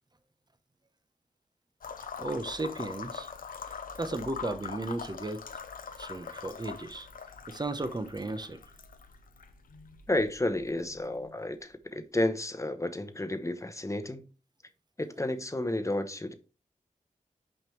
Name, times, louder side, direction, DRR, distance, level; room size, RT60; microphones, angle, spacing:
sound 1, 1.8-11.6, left 6 dB, 85° left, 0.6 m, -43 dB
voice 1, 2.2-3.3 3.6-5.4 6.0-7.1 7.5-8.6, right 2 dB, 30° right, 0.9 m, -35 dB
voice 2, 10.1-14.3 15.0-16.3, left 1 dB, 20° left, 0.9 m, -31 dB
6.1 x 5.2 x 3.2 m
cardioid pair, 45°, 14 cm